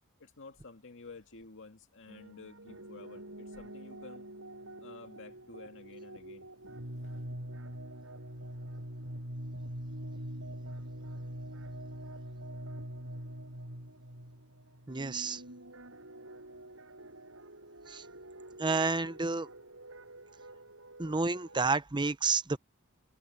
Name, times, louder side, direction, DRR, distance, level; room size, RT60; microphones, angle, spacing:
voice 1, 0.2-4.3 4.8-6.8, left 3 dB, 60° left, 2.3 m, -51 dB
sound 1, 2.1-21.7, right 1 dB, 65° right, 7.3 m, -45 dB
voice 2, 14.9-15.4 17.9-18.0 18.6-19.5 21.0-22.6, right 4 dB, 20° right, 0.7 m, -30 dB
head